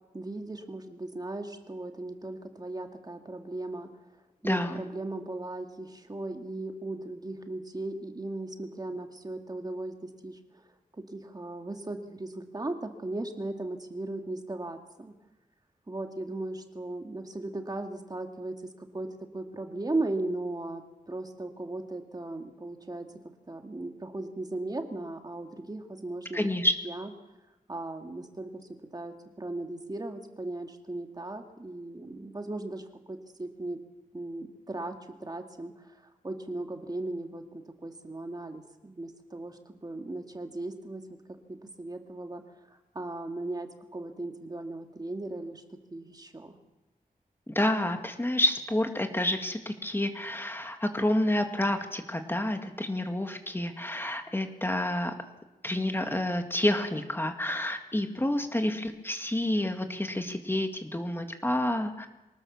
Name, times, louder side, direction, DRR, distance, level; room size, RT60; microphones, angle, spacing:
voice 1, 0.1-4.1 4.4-10.6 10.9-15.1 15.9-23.1 23.5-26.5 26.8-27.1 27.7-33.8 34.1-41.0 41.3-46.6, right 2 dB, 25° right, 5 dB, 2.0 m, -37 dB
voice 2, 4.4-4.9 26.3-26.7 47.5-55.1 55.6-62.1, left 1 dB, 15° left, 6 dB, 1.9 m, -29 dB
24.0 x 19.0 x 7.2 m, 1.0 s
wide cardioid pair, 120°, 15 cm